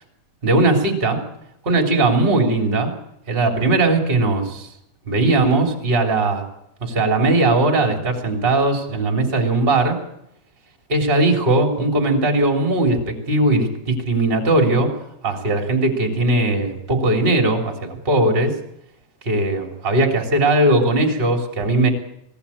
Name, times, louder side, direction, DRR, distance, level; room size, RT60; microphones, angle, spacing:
voice 1, 0.4-1.2 1.6-2.9 3.3-4.7 5.1-6.4 6.8-10.0 10.9-14.9 15.2-18.5 19.2-21.9, right 2 dB, 15° right, 3 dB, 2.5 m, -19 dB
22.0 x 18.0 x 8.5 m, 0.82 s
omnidirectional pair, 5.1 m